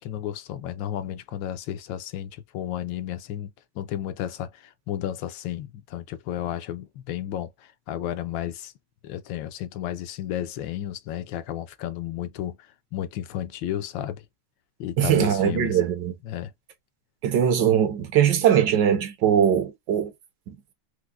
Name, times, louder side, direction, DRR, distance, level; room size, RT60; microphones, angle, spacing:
voice 1, 0.0-8.7 9.0-12.6 12.9-14.2 14.8-15.8 16.2-16.5, left 11 dB, 80° left, 1.3 m, -33 dB
voice 2, 15.0-16.1 17.2-20.1, right 9 dB, 70° right, 1.4 m, -21 dB
4.7 x 2.1 x 2.3 m
omnidirectional pair, 2.1 m